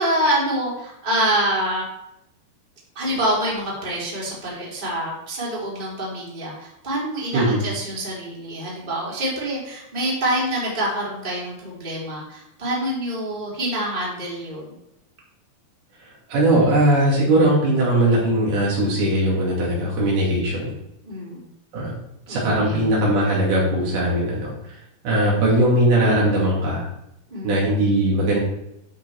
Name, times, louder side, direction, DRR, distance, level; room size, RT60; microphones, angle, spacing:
voice 1, 0.0-1.8 2.9-14.8 21.0-21.5 22.3-22.9 27.3-27.6, right 1 dB, 15° right, -6 dB, 3.0 m, -26 dB
voice 2, 16.3-20.7 21.7-21.9 22.3-24.5 25.0-26.8 27.4-28.4, right 1 dB, 70° right, -5 dB, 4.3 m, -19 dB
11.5 x 4.7 x 4.7 m, 0.84 s
omnidirectional pair, 4.8 m